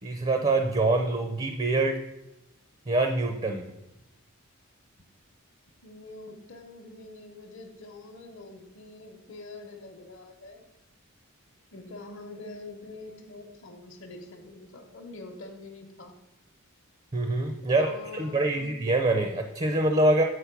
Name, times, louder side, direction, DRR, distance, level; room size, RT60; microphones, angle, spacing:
voice 1, 0.0-2.0 2.9-3.7 17.1-20.2, right 2 dB, 25° right, 6 dB, 0.5 m, -25 dB
voice 2, 5.8-10.6 11.7-16.1 17.6-18.8, left 2 dB, 60° left, 0 dB, 0.9 m, -45 dB
8.4 x 4.3 x 5.8 m, 0.92 s
head